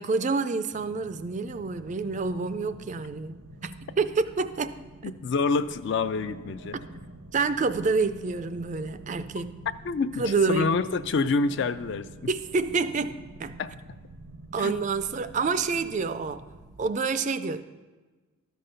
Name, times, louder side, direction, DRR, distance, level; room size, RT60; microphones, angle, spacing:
voice 1, 0.0-5.1 7.3-9.6 10.2-10.7 12.3-13.6 14.5-16.4 16.8-17.6, right 4 dB, 35° right, 0.3 m, -28 dB
sound 1, 0.7-16.9, right 1 dB, 90° right, 0.7 m, -47 dB
voice 2, 5.0-6.8 9.9-10.2 10.5-12.1 13.6-13.7 14.6-14.8, left 4 dB, 55° left, 0.3 m, -27 dB
13.0 x 5.3 x 5.5 m
head